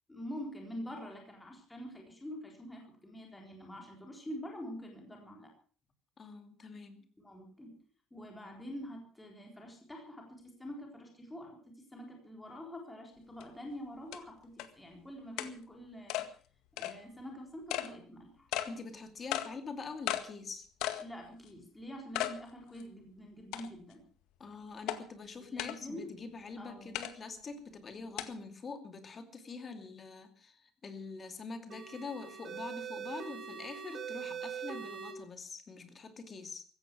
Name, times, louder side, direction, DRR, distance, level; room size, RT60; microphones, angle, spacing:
voice 1, 0.1-5.5 7.2-7.7 8.1-16.2 16.8-18.5 21.0-24.0 25.4-26.1 26.6-26.9, equal, 5° left, 1 dB, 3.9 m, -46 dB
voice 2, 6.2-7.1 18.7-20.7 24.4-36.6, left 4 dB, 25° left, 8 dB, 2.5 m, -45 dB
sound 1, 13.4-13.5 14.1-14.2 14.6-14.7 15.4-15.5 16.1-16.3 16.8-16.9 17.7-17.9 18.5-18.7 19.3-19.5 20.1-20.2 20.8-21.0 21.5-21.6 22.1-22.4 22.8-22.9 23.5-23.9 24.9-25.0 25.6-25.8 26.9-27.1 28.2-28.3, left 13 dB, 75° left, 1.9 m, -35 dB
sound 2, 31.7-35.1, right 8 dB, 30° right, 3.5 m, -42 dB
16.0 x 14.5 x 6.1 m, 0.43 s
cardioid pair, 175°, 0 cm